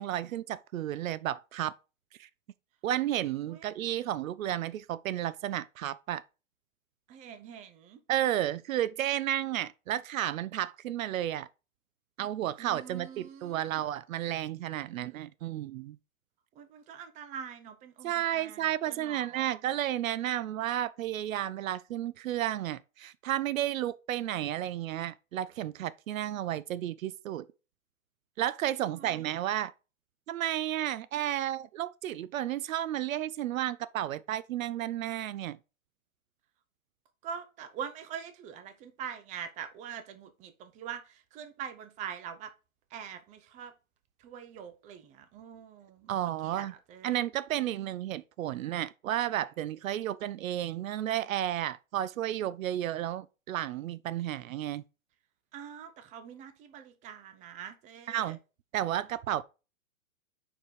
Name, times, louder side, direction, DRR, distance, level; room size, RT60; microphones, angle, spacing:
voice 1, 0.0-1.7 2.2-2.3 2.8-6.2 8.1-11.5 12.2-16.0 18.0-27.5 28.4-29.7 30.3-35.6 46.1-46.7 47.0-54.8 58.1-58.4 58.7-59.4, right 12 dB, 70° right, 0.5 m, -32 dB
voice 2, 7.1-8.0 12.6-13.8 16.6-19.5 28.9-29.2 37.2-42.5 42.9-43.7 44.2-46.2 46.4-47.2 47.6-47.9 55.5-58.4, right 8 dB, 15° right, 0.6 m, -44 dB
5.5 x 4.4 x 4.6 m
hypercardioid pair, 135°, 42 cm